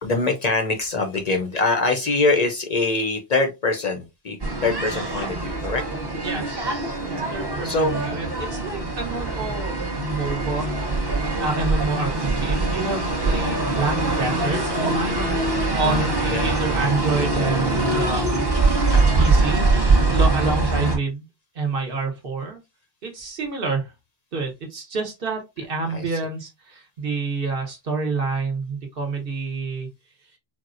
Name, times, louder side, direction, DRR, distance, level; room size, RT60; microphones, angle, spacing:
voice 1, 0.0-5.8 7.6-8.0 15.8-16.5 18.9-19.0 25.9-26.2, left 3 dB, 55° left, 4 dB, 0.4 m, -24 dB
sound 1, 4.4-21.0, right 2 dB, 25° right, 0.6 m, -23 dB
voice 2, 6.2-10.8 11.0-15.3 15.8-19.8 20.1-21.3 21.5-22.6 23.0-23.9 24.3-29.9, right 3 dB, 55° right, 3 dB, 1.0 m, -28 dB
4.2 x 2.0 x 2.4 m, 0.24 s
omnidirectional pair, 1.2 m